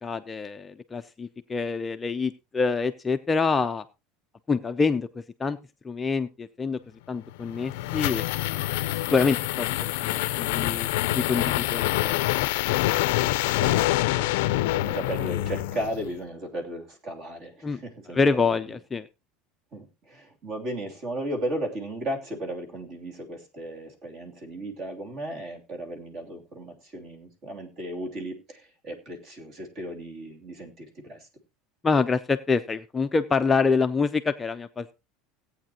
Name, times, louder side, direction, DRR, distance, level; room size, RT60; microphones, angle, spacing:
voice 1, 0.0-3.8 4.5-5.1 5.4-5.6 5.8-6.8 7.1-8.2 9.1-9.7 10.0-12.5 17.6-17.8 18.1-19.1 31.8-34.9, left 4 dB, 15° left, 7 dB, 0.5 m, -26 dB
sound 1, 7.3-16.1, left 17 dB, 80° left, 0.5 m, -26 dB
voice 2, 13.5-18.6 19.7-31.3, right 1 dB, 35° right, 3 dB, 3.0 m, -35 dB
17.0 x 8.7 x 2.9 m, 0.27 s
cardioid pair, 160°, 0 cm